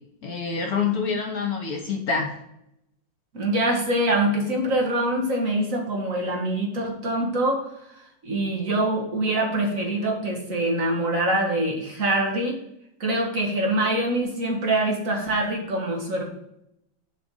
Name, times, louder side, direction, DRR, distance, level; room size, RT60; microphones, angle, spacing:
voice 1, 0.2-2.3, left 5 dB, 55° left, 3 dB, 1.7 m, -26 dB
voice 2, 3.3-7.6 8.2-12.6 13.0-16.2, right 1 dB, 45° right, 1 dB, 2.1 m, -24 dB
7.0 x 5.3 x 5.4 m, 0.78 s
omnidirectional pair, 2.0 m